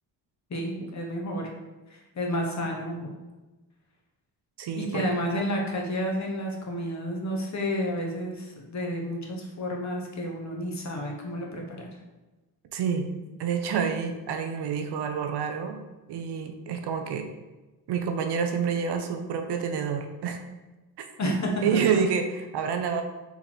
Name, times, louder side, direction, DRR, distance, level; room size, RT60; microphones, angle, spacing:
voice 1, 0.5-1.5 1.9-3.1 4.7-11.9 21.2-22.0, equal, 40° left, 0 dB, 1.2 m, -30 dB
voice 2, 4.6-5.0 12.7-13.1 13.4-15.8 16.1-17.3 17.9-20.4 21.6-23.0, right 6 dB, 70° right, 6 dB, 0.7 m, -28 dB
4.1 x 3.0 x 4.1 m, 1.1 s
cardioid pair, 70°, 41 cm